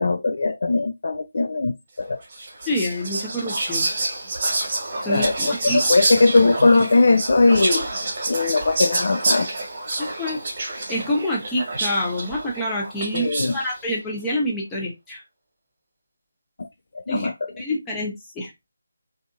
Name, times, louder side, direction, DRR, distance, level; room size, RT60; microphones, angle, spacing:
voice 1, 0.0-2.2 5.0-7.9 8.3-9.5 13.1-13.6 16.6-16.7 16.9-17.5, left 3 dB, 50° left, 0.4 m, -20 dB
Whispering, 2.3-13.7, right 2 dB, 30° right, 1.3 m, -27 dB
voice 2, 2.7-3.9 5.0-5.8 10.0-10.4 10.9-15.2 17.1-17.3 17.6-18.5, equal, 10° left, 0.9 m, -27 dB
3.3 x 2.7 x 2.5 m
figure-of-eight pair, 155°, 0 cm